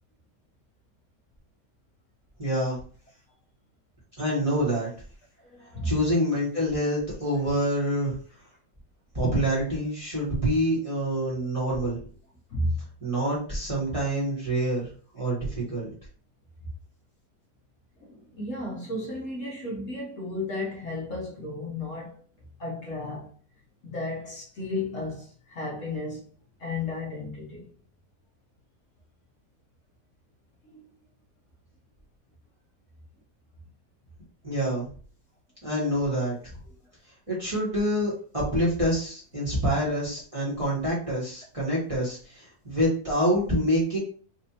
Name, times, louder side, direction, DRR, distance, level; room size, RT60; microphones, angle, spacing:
voice 1, 2.4-2.8 4.2-4.9 5.8-8.1 9.1-12.0 13.0-14.9 15.1-15.9 34.4-34.9 35.6-36.5 37.3-44.0, equal, 20° right, 1.3 m, -26 dB
voice 2, 5.5-5.9 12.5-12.8 18.1-22.1 22.6-23.3 23.8-26.2 26.6-27.7 30.7-30.8, left 2 dB, 55° left, 1.2 m, -33 dB
4.2 x 2.5 x 2.8 m
omnidirectional pair, 1.8 m